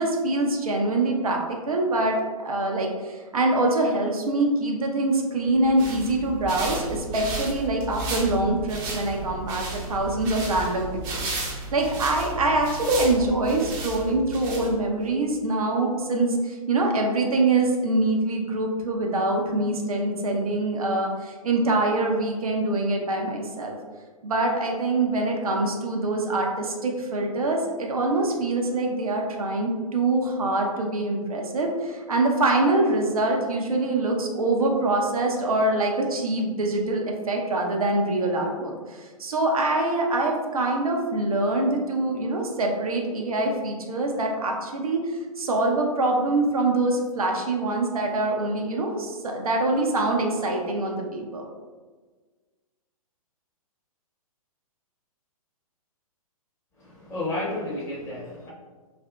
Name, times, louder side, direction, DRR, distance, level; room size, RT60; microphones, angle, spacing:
voice 1, 0.0-2.2 2.4-23.8 24.2-51.5, right 2 dB, 75° right, 1 dB, 0.5 m, -24 dB
sound 1, 5.5-15.0, right 2 dB, 25° right, 0.5 m, -34 dB
voice 2, 56.8-58.5, left 2 dB, 15° left, -7 dB, 0.7 m, -31 dB
2.6 x 2.4 x 2.3 m, 1.4 s
figure-of-eight pair, 120°, 19 cm